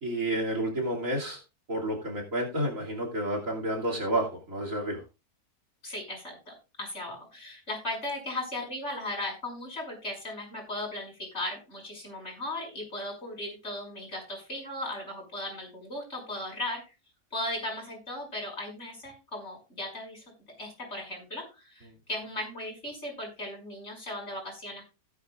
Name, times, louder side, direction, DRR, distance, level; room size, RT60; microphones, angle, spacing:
voice 1, 0.0-1.4 1.7-5.0, right 1 dB, 55° right, 2 dB, 3.1 m, -30 dB
voice 2, 5.8-16.8 17.3-20.2 20.6-24.8, left 1 dB, 45° left, 0 dB, 6.4 m, -37 dB
17.0 x 9.3 x 2.5 m, 0.28 s
omnidirectional pair, 1.6 m